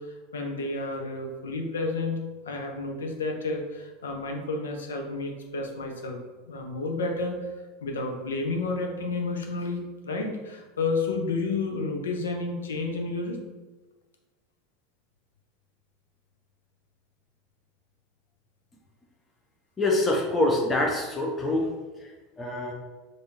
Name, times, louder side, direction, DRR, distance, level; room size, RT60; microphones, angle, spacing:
voice 1, 0.0-2.2 2.5-6.2 6.5-7.5 7.8-13.4, left 3 dB, 90° left, 3 dB, 0.5 m, -31 dB
voice 2, 19.8-21.7 22.0-22.7, left 2 dB, 25° left, -1 dB, 0.6 m, -25 dB
3.4 x 2.5 x 2.7 m, 1.2 s
hypercardioid pair, 90°, 0 cm